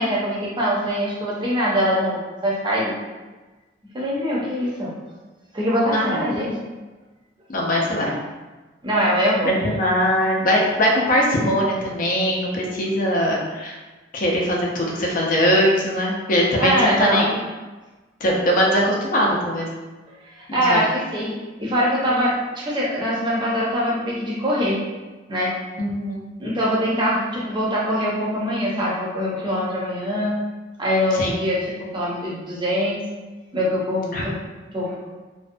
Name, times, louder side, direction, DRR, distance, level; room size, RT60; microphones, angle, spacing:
voice 1, 0.0-2.9 3.9-4.9 5.5-6.5 8.8-9.5 16.6-17.3 20.3-21.3 21.6-24.8 25.3-25.5 26.4-30.4 30.8-33.0 33.5-34.4 34.7-34.9, equal, 25° right, -5 dB, 0.6 m, -23 dB
voice 2, 5.9-6.3 7.5-8.1 9.4-13.8 14.1-17.4 18.2-19.7 20.5-20.8 25.8-26.2 31.1-31.4 34.1-34.2, equal, 50° left, -2 dB, 0.5 m, -21 dB
2.5 x 2.1 x 2.5 m, 1.2 s
head